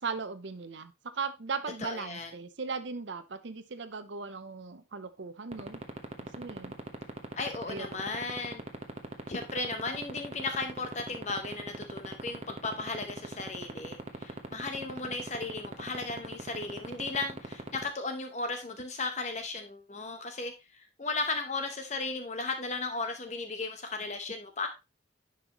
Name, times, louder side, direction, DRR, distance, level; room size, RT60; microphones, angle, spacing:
voice 1, 0.0-5.8 6.4-6.8 7.7-8.1 15.0-15.1, right 4 dB, 70° right, 0.7 m, -38 dB
voice 2, 1.8-2.3 7.4-8.6 9.3-24.7, left 3 dB, 35° left, 0.8 m, -35 dB
sound 1, 5.5-17.8, right 2 dB, 30° right, 1.0 m, -36 dB
10.0 x 5.5 x 3.0 m
head